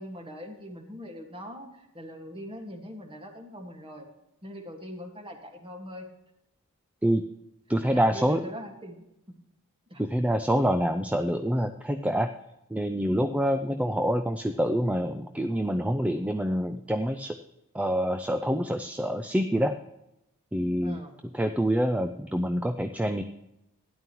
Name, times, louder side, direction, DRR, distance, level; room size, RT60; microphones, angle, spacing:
voice 1, 0.0-4.1 4.4-6.1 7.9-9.1 9.9-10.0 20.8-21.2, equal, 25° right, 4 dB, 1.7 m, -41 dB
voice 2, 7.7-8.4 10.0-12.3 12.7-17.4 17.7-19.8 20.5-21.0 21.3-23.2, equal, 5° right, 7 dB, 0.4 m, -26 dB
13.0 x 10.5 x 3.0 m, 0.86 s
head